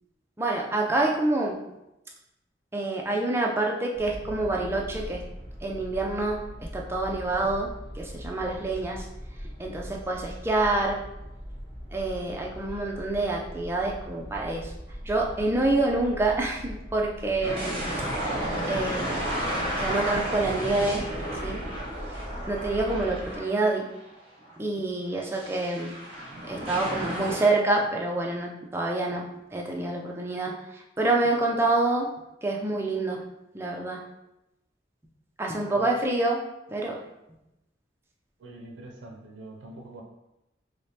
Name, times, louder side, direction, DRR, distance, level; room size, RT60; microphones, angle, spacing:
voice 1, 0.4-1.6 2.7-5.2 5.6-9.1 9.4-11.0 11.9-14.7 15.0-18.3 18.6-19.2 19.7-21.0 21.4-21.6 22.5-23.9 24.6-26.0 26.5-29.3 29.5-32.1 32.4-33.2 33.5-34.0 35.4-36.4 36.7-37.0, right 2 dB, 15° right, -1 dB, 0.4 m, -27 dB
sound 1, 3.9-23.4, equal, 30° left, 1.1 m, -40 dB
sound 2, 17.4-24.0 24.4-24.5 25.3-27.5, right 1 dB, 30° right, 0.8 m, -32 dB
voice 2, 38.4-40.0, right 2 dB, 85° right, 1 dB, 0.5 m, -44 dB
4.8 x 2.1 x 2.7 m, 0.91 s
head